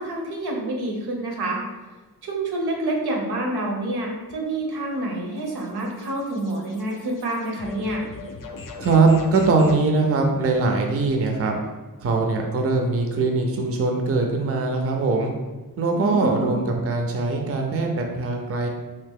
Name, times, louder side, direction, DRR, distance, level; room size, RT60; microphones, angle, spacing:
voice 1, 0.0-1.6 2.2-8.0 15.9-16.6, right 1 dB, 85° right, 0 dB, 0.8 m, -28 dB
sound 1, 4.5-9.9, left 3 dB, 60° left, 0.5 m, -41 dB
voice 2, 8.8-11.6 12.0-15.3 15.8-18.7, right 3 dB, 40° right, 2 dB, 0.4 m, -21 dB
2.8 x 2.8 x 3.6 m, 1.2 s
wide cardioid pair, 145°, 37 cm